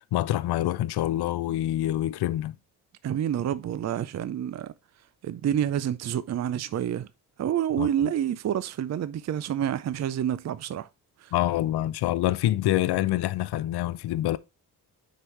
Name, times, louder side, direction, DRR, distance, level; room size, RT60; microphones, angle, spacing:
voice 1, 0.1-2.5 7.8-7.9 11.3-14.4, left 14 dB, 70° left, 0.5 m, -26 dB
voice 2, 3.0-4.7 5.2-7.1 7.4-10.9 11.2-11.3, right 10 dB, 40° right, 0.4 m, -28 dB
6.6 x 4.7 x 3.2 m
cardioid pair, 60°, 41 cm